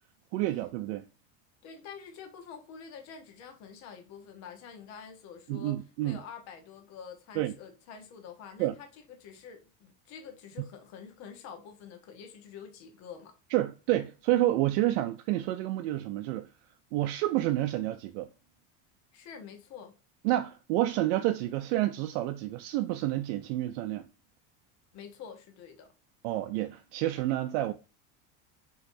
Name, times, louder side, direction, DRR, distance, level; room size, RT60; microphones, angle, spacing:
voice 1, 0.3-1.0 5.5-6.2 7.4-7.5 8.6-8.7 13.5-16.5 16.9-18.3 20.2-24.1 26.2-27.7, right 15 dB, 80° right, 0.5 m, -29 dB
voice 2, 1.6-13.4 19.1-19.9 24.9-25.9, left 7 dB, 50° left, 1.1 m, -47 dB
5.7 x 3.1 x 2.7 m
cardioid pair, 150°, 34 cm